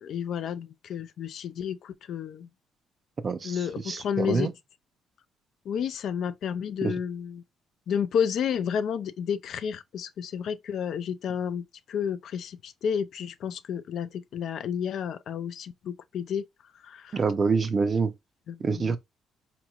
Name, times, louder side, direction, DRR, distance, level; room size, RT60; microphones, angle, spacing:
voice 1, 0.0-2.5 3.4-4.5 5.7-7.4 7.9-16.4 16.8-17.2 18.5-19.0, left 8 dB, 65° left, 0.3 m, -31 dB
voice 2, 3.2-3.6 3.9-4.5 6.8-6.9 17.1-18.1 18.6-19.0, right 4 dB, 35° right, 0.5 m, -26 dB
3.9 x 3.0 x 2.3 m
cardioid pair, 105°, 0 cm